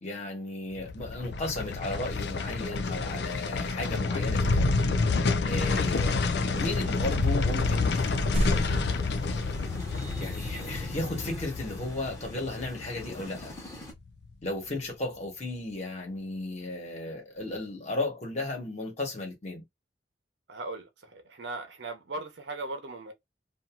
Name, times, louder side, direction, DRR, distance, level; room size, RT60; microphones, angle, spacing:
voice 1, 0.0-4.8 5.4-8.9 10.2-13.5 14.4-19.6, left 2 dB, 40° left, 1.3 m, -35 dB
sound 1, 0.7-13.9 14.2-14.3, left 3 dB, 70° left, 0.4 m, -29 dB
sound 2, 5.5-13.9, equal, 20° left, 1.0 m, -44 dB
sound 3, 7.9-10.0, equal, 35° right, 0.6 m, -33 dB
voice 2, 20.5-23.1, right 2 dB, 80° right, 0.8 m, -38 dB
2.7 x 2.6 x 2.4 m
head